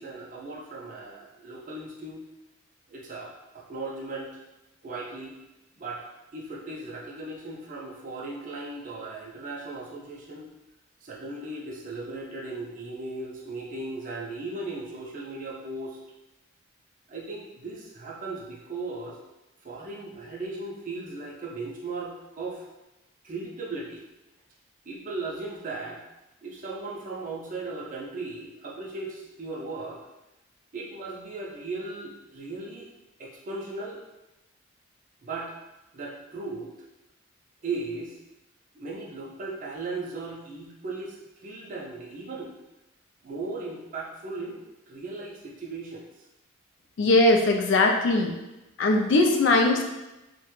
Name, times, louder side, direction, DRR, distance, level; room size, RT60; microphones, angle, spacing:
voice 1, 0.0-2.2 2.9-4.4 4.8-5.4 5.8-10.5 11.0-16.0 17.1-19.2 19.6-22.6 23.2-24.0 24.9-26.0 26.4-30.0 30.7-32.9 33.2-34.0 35.2-35.5 35.9-36.7 37.6-38.2 38.7-42.5 43.2-46.1, right 3 dB, 40° right, -3 dB, 0.4 m, -37 dB
voice 2, 47.0-48.4 48.8-49.8, left 2 dB, 55° left, 3 dB, 0.3 m, -20 dB
2.4 x 2.1 x 3.0 m, 1.0 s
head